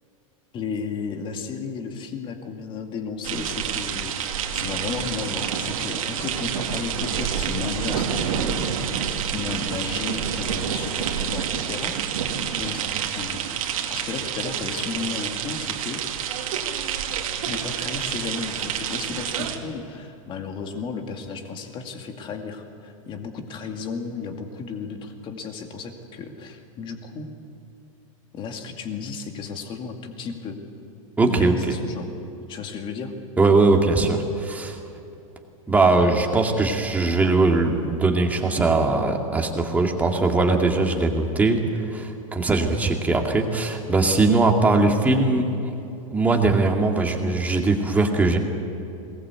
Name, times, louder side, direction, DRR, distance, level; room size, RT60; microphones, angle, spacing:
voice 1, 0.5-13.4 13.9-16.0 17.5-27.3 28.3-30.6 31.2-32.1 32.5-33.1, left 5 dB, 25° left, 4 dB, 2.2 m, -34 dB
sound 1, 3.2-19.6, right 8 dB, 75° right, 2.4 m, -28 dB
voice 2, 31.2-31.5 33.4-34.8 35.7-45.7 46.1-48.4, right 3 dB, 10° right, 2 dB, 2.2 m, -20 dB
22.0 x 19.0 x 8.3 m, 2.8 s
supercardioid pair, 145°, 18 cm